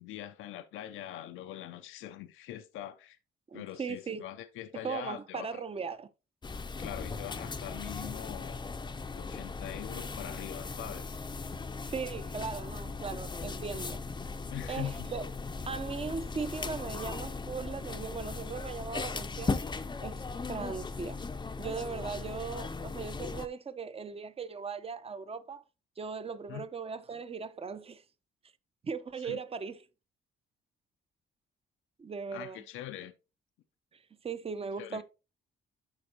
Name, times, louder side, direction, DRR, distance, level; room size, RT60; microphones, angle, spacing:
voice 1, 0.0-3.2 3.5-5.6 6.8-8.6 9.1-11.2 14.5-15.1 26.5-26.6 29.2-29.4 32.3-33.1 34.8-35.0, left 12 dB, 90° left, 0.6 m, -42 dB
voice 2, 3.5-4.2 4.8-6.1 11.9-14.0 14.7-15.3 15.7-19.5 20.0-20.2 20.5-21.2 21.6-25.6 26.0-28.0 28.8-29.8 32.0-32.6 33.9-35.0, right 5 dB, 30° right, 0.7 m, -38 dB
sound 1, 6.4-23.5, left 4 dB, 20° left, 0.6 m, -38 dB
11.5 x 4.3 x 2.9 m
cardioid pair, 90°, 20 cm